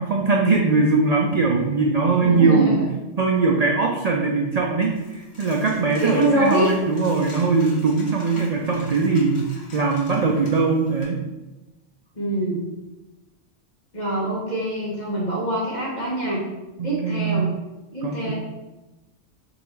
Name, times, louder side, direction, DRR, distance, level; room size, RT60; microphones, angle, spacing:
voice 1, 0.0-2.8 3.2-9.5 9.7-11.2 16.8-17.4 18.0-18.3, right 4 dB, 75° right, 0 dB, 0.3 m, -21 dB
voice 2, 2.1-2.9 6.0-6.7 12.1-12.6 13.9-16.4 16.8-17.5 17.9-18.3, right 1 dB, 40° left, -5 dB, 1.3 m, -24 dB
Coin (dropping), 4.8-11.0, left 2 dB, 75° left, 1.5 m, -45 dB
3.9 x 2.9 x 4.5 m, 1.1 s
omnidirectional pair, 1.2 m